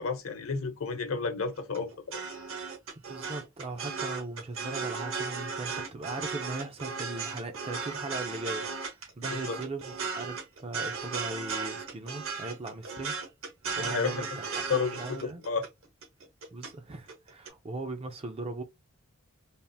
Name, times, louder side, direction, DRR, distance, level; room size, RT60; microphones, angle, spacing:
voice 1, 0.0-2.2 9.2-9.6 13.7-14.2 14.7-15.6, left 5 dB, 70° left, 0.8 m, -32 dB
sound 1, 1.6-16.7 17.1-17.5, right 5 dB, 65° right, 1.0 m, -36 dB
voice 2, 3.1-8.7 9.2-13.2 13.8-15.4 16.5-18.6, right 2 dB, 25° right, 0.4 m, -39 dB
3.4 x 2.4 x 2.6 m
head